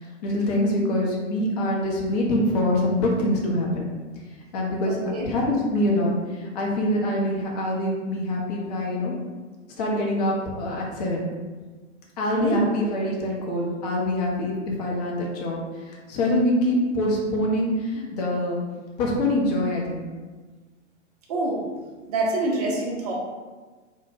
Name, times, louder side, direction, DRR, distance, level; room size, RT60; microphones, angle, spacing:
voice 1, 0.0-3.9 4.5-9.1 9.8-11.3 12.2-18.6 19.0-20.0, left 1 dB, 35° left, -2 dB, 0.5 m, -25 dB
voice 2, 4.9-5.3 12.3-12.6 21.3-21.6 22.1-23.1, right 2 dB, 35° right, -3 dB, 0.5 m, -26 dB
2.1 x 2.1 x 3.2 m, 1.4 s
figure-of-eight pair, 105°, 36 cm